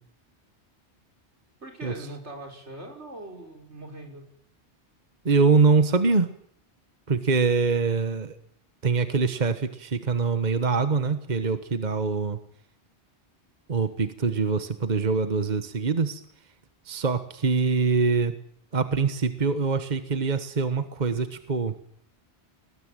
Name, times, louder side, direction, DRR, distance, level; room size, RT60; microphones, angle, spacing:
voice 1, 1.6-4.3, right 1 dB, 80° right, 2 dB, 6.2 m, -41 dB
voice 2, 5.2-6.3 7.1-8.4 8.8-12.4 13.7-16.2 16.8-18.3 18.7-21.7, right 4 dB, 40° right, 10 dB, 1.4 m, -24 dB
22.0 x 20.5 x 9.1 m, 0.66 s
omnidirectional pair, 1.1 m